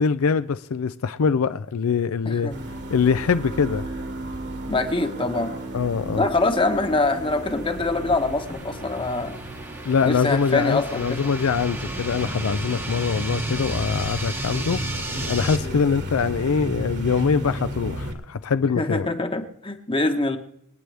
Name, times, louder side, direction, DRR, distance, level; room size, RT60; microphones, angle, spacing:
voice 1, 0.0-2.5 2.9-3.9 5.7-6.3 9.8-14.8 15.3-19.1, left 5 dB, 75° left, 0.5 m, -23 dB
sound 1, 2.5-18.1, right 1 dB, 55° right, 1.9 m, -33 dB
voice 2, 4.7-5.5 6.2-9.4 10.0-11.2 15.6-15.8 18.8-20.4, left 2 dB, 25° left, 1.1 m, -24 dB
sound 2, 5.1-15.6, right 2 dB, 10° right, 1.0 m, -37 dB
26.5 x 9.2 x 3.4 m
head